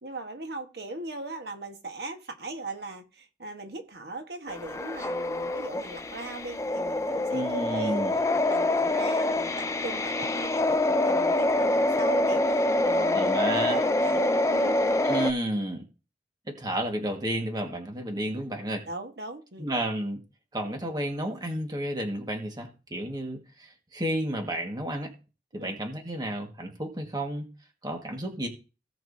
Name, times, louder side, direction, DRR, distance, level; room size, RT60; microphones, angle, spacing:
voice 1, 0.0-8.0 8.3-11.7 12.0-14.8 18.9-19.7 25.6-25.8, right 2 dB, 70° right, 5 dB, 1.3 m, -39 dB
sound 1, 4.5-15.3, left 1 dB, 15° left, 0.4 m, -26 dB
voice 2, 7.3-8.1 13.1-13.8 15.0-15.8 16.5-18.8 19.6-20.2 20.5-25.1 25.5-27.5 27.8-28.5, right 1 dB, 25° right, 3 dB, 1.6 m, -31 dB
17.0 x 5.9 x 2.7 m, 0.32 s
head